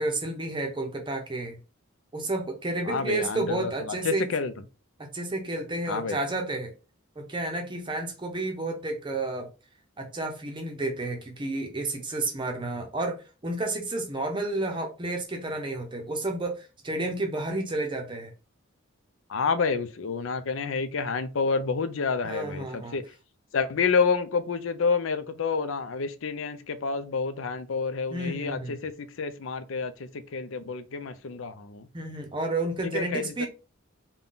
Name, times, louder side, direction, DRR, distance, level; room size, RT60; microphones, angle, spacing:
voice 1, 0.0-1.6 2.1-4.3 5.0-6.7 7.2-9.5 10.0-18.3 22.2-23.0 28.1-28.8 31.9-33.5, right 2 dB, 25° right, 0.6 m, -31 dB
voice 2, 2.8-4.5 5.9-6.2 19.3-23.0 23.5-28.9 29.2-31.9 32.9-33.5, left 5 dB, 70° left, 0.5 m, -29 dB
3.7 x 2.2 x 3.8 m
head